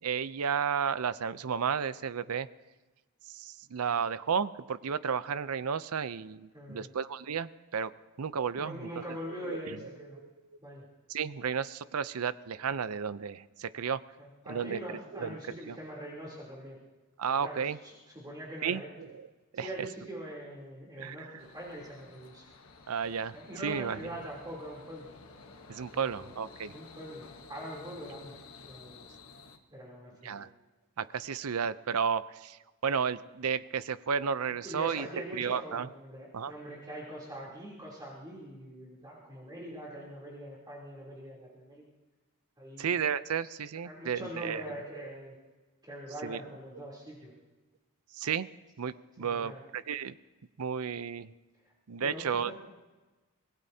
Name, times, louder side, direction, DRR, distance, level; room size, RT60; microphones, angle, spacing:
voice 1, 0.0-2.5 3.3-7.9 8.2-8.9 9.3-9.9 10.2-10.6 11.1-14.0 14.5-14.8 15.1-15.8 17.2-17.8 18.6-19.3 19.5-19.7 21.0-21.4 22.9-23.4 23.6-24.0 25.7-26.7 30.2-30.5 31.0-35.9 36.3-36.5 42.8-45.1 46.2-46.4 48.1-48.5 48.8-50.2 50.6-51.3 51.9-52.5, right 6 dB, 85° right, 15 dB, 0.6 m, -33 dB
voice 2, 6.5-6.9 8.5-10.2 10.6-10.9 14.2-16.8 17.4-18.9 19.6-22.4 23.3-25.1 25.9-26.4 26.7-28.4 28.6-29.1 29.7-30.4 34.6-41.8 42.6-42.9 43.8-45.4 45.8-47.3 49.2-49.6 52.0-52.5, equal, 20° right, -5 dB, 3.2 m, -43 dB
sound 1, 21.4-29.6, left 4 dB, 70° left, 1.2 m, -52 dB
25.5 x 19.5 x 2.8 m, 1.2 s
head